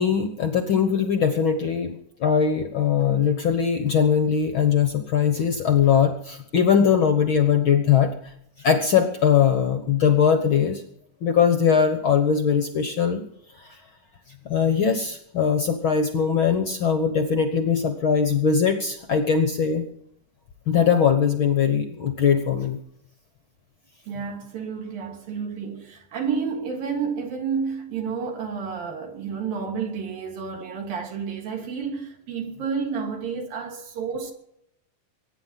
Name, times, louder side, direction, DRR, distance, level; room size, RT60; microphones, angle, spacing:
voice 1, 0.0-8.1 8.6-10.8 11.2-13.2 13.6-13.8 14.4-19.8 20.7-22.8, left 7 dB, 70° left, 1.2 m, -21 dB
voice 2, 24.1-34.3, right 6 dB, 80° right, 4.6 m, -30 dB
23.0 x 9.9 x 5.8 m
omnidirectional pair, 4.0 m